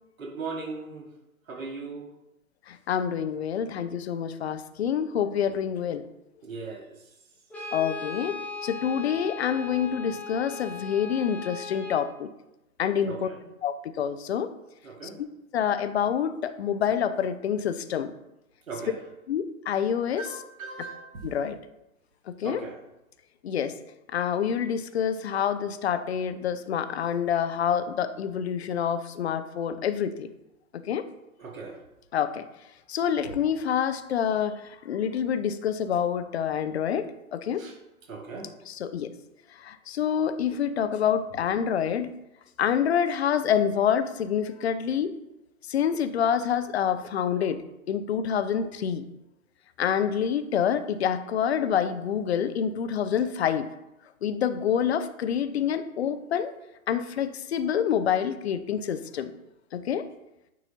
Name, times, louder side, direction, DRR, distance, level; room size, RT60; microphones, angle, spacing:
voice 1, 0.2-1.1 1.5-2.1 6.4-6.9 13.0-13.4 14.8-15.2 18.7-19.0 20.2-21.3 22.4-22.7 31.4-31.8 37.6-37.7 38.1-38.5, right 4 dB, 70° right, 1 dB, 1.7 m, -38 dB
voice 2, 2.7-6.1 7.7-12.3 12.8-13.3 13.6-14.5 15.5-18.1 19.3-20.4 21.2-21.6 22.3-22.7 23.4-23.7 24.1-30.3 30.8-31.0 32.1-32.4 32.9-37.7 38.7-39.1 39.6-42.2 42.6-45.1 45.7-49.0 49.8-53.7 54.2-56.5 56.9-59.3 59.7-60.1, left 8 dB, 50° left, 11 dB, 0.5 m, -27 dB
Brass instrument, 7.5-12.1, left 3 dB, 5° left, 0.8 m, -38 dB
9.1 x 4.1 x 2.7 m, 0.89 s
figure-of-eight pair, 120°, 43 cm